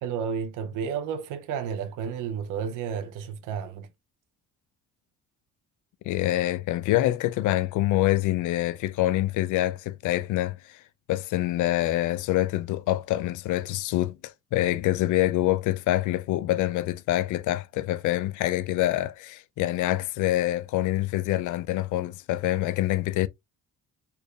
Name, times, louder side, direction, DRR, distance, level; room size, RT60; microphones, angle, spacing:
voice 1, 0.0-3.9, right 7 dB, 90° right, 0.6 m, -32 dB
voice 2, 6.1-10.8 11.1-23.3, left 15 dB, 85° left, 0.5 m, -26 dB
4.1 x 3.3 x 2.3 m
cardioid pair, 90°, 30 cm